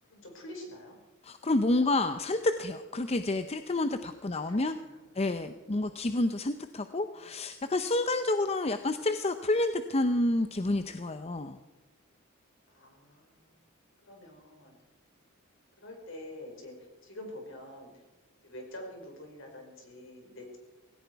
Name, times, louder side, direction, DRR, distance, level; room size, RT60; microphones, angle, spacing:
voice 1, 0.1-1.0 1.8-2.0 4.3-5.6 7.1-7.2 12.7-13.5 14.1-14.7 15.8-17.9 18.4-20.6, left 1 dB, 60° left, 2 dB, 5.0 m, -47 dB
voice 2, 1.2-4.7 5.1-11.6, left 2 dB, 30° left, 9 dB, 0.6 m, -29 dB
18.0 x 17.0 x 4.7 m, 1.1 s
head